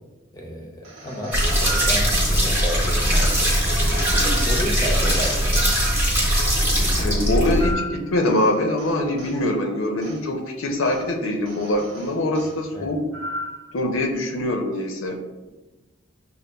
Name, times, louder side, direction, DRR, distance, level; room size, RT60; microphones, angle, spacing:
voice 1, 0.3-3.6 4.2-5.7 12.7-12.9, equal, 20° left, 0 dB, 0.5 m, -32 dB
sound 1, 0.8-2.6 3.3-6.5 6.8-9.4 10.0-10.2 10.8-11.1 11.5-12.6 13.1-13.7, right 2 dB, 80° right, 0.8 m, -35 dB
sound 2, 1.3-7.7, equal, 10° right, 0.8 m, -20 dB
voice 2, 7.0-13.0 13.7-15.2, left 1 dB, 90° left, 3 dB, 0.6 m, -23 dB
6.4 x 2.2 x 2.2 m, 1.1 s
head